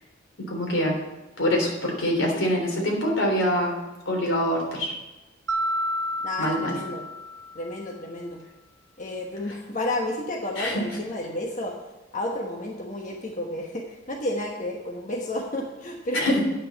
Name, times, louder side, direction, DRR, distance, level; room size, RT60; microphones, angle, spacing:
voice 1, 0.5-1.0 1.4-3.7 4.1-4.9 6.4-6.8 10.6-10.8 16.1-16.4, equal, 90° left, -1 dB, 3.5 m, -24 dB
Mallet percussion, 5.5-7.9, equal, 80° right, 1.2 m, -30 dB
voice 2, 6.2-7.1 7.5-8.4 9.0-11.7 12.1-16.4, left 1 dB, 40° left, 0 dB, 1.2 m, -31 dB
9.4 x 6.4 x 7.3 m, 1.1 s
head